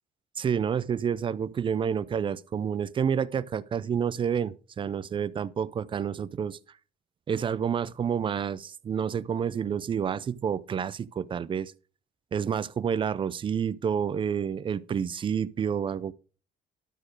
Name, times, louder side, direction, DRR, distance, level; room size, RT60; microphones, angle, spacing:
voice 1, 0.4-6.6 7.3-11.7 12.3-16.1, right 7 dB, 30° right, 0.4 m, -29 dB
12.0 x 4.3 x 4.7 m
cardioid pair, 110°, 17 cm